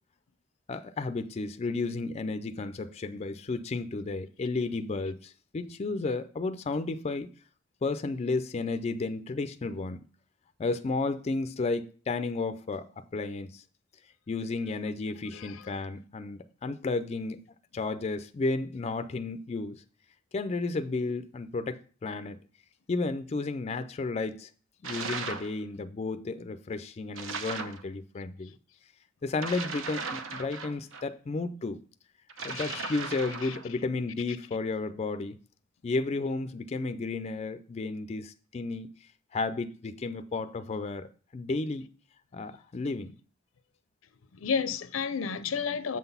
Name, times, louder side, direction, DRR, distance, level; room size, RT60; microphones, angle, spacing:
voice 1, 0.7-7.3 7.8-10.0 10.6-13.6 14.3-17.4 17.7-19.8 20.3-22.4 22.9-24.5 24.8-28.5 29.2-31.8 32.4-35.4 35.8-38.9 39.3-41.1 41.3-41.9 42.3-43.1, left 3 dB, 30° left, 0.4 m, -33 dB
voice 2, 15.3-15.6 32.4-32.9 33.4-33.6 44.4-46.0, left 6 dB, 85° left, 0.5 m, -32 dB
sound 1, 24.8-25.5 27.1-27.8 29.3-31.0 32.3-33.7, right 4 dB, 75° right, 0.8 m, -37 dB
7.4 x 3.9 x 5.5 m
head